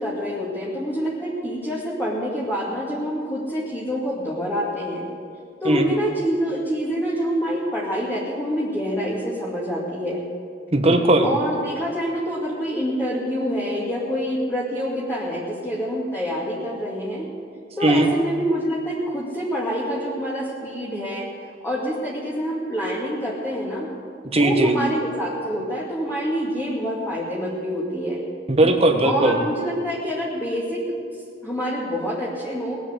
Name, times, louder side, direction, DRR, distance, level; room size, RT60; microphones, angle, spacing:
voice 1, 0.0-5.1 5.6-10.2 11.2-17.3 17.8-21.3 21.6-23.9 24.3-28.2 29.0-31.0 31.4-32.8, equal, 10° left, -7 dB, 2.3 m, -26 dB
voice 2, 10.7-11.3 17.8-18.1 24.2-24.7 28.5-29.4, right 2 dB, 35° right, 5 dB, 1.4 m, -18 dB
20.0 x 8.2 x 8.0 m, 2.4 s
head